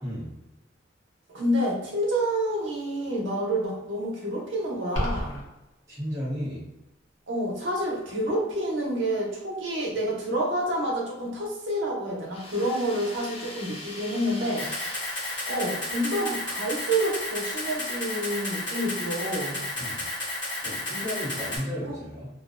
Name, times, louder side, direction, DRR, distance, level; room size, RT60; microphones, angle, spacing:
voice 1, 0.0-0.3 5.9-6.6 19.7-20.1 20.6-22.3, equal, 15° right, -9 dB, 0.6 m, -33 dB
voice 2, 1.3-5.4 7.3-14.7 15.5-19.6 21.8-21.9, right 1 dB, 65° right, -3 dB, 0.7 m, -28 dB
sound 1, 4.9-5.4, equal, 85° left, 0.7 m, -28 dB
sound 2, 12.3-16.4, left 2 dB, 30° left, 0.4 m, -42 dB
Camera, 14.6-21.6, left 2 dB, 60° left, 1.2 m, -32 dB
2.4 x 2.1 x 2.4 m, 0.99 s
head